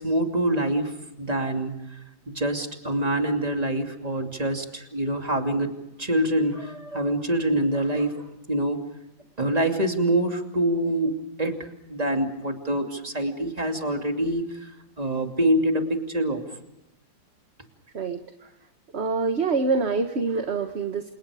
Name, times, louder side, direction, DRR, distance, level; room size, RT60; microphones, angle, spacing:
voice 1, 0.0-1.8 2.3-5.7 6.0-8.8 9.4-14.7 15.0-16.4, right 1 dB, 20° right, 4 dB, 2.7 m, -25 dB
voice 2, 18.9-21.1, right 4 dB, 35° right, 6 dB, 1.4 m, -25 dB
28.5 x 28.5 x 5.0 m, 0.87 s
omnidirectional pair, 2.1 m